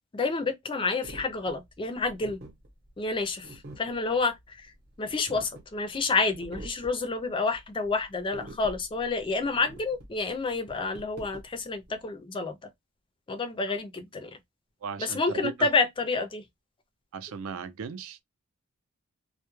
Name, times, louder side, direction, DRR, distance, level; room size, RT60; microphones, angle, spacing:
voice 1, 0.1-2.4 3.0-4.7 5.0-12.6 13.3-14.3 15.0-16.4, left 3 dB, 25° left, 0.4 m, -29 dB
sound 1, 1.0-12.0, right 1 dB, 50° right, 0.8 m, -47 dB
voice 2, 14.8-15.7 17.1-18.2, right 5 dB, 65° right, 0.4 m, -36 dB
2.2 x 2.0 x 3.0 m
head